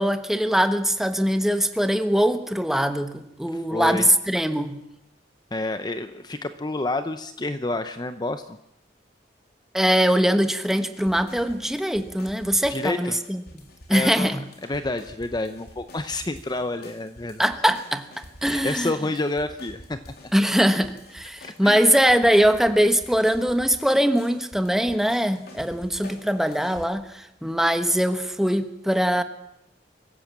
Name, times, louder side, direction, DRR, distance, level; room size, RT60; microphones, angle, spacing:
voice 1, 0.0-4.8 9.7-13.4 13.9-14.4 17.4-18.1 18.4-18.9 20.3-29.2, equal, ahead, 8 dB, 1.2 m, -22 dB
voice 2, 3.5-4.1 5.5-8.6 12.7-13.1 13.9-17.5 18.4-20.3 21.4-21.9, left 2 dB, 25° left, 9 dB, 0.7 m, -29 dB
sound 1, 10.4-26.8, left 1 dB, 60° left, 3.6 m, -47 dB
24.0 x 16.0 x 7.3 m, 0.84 s
head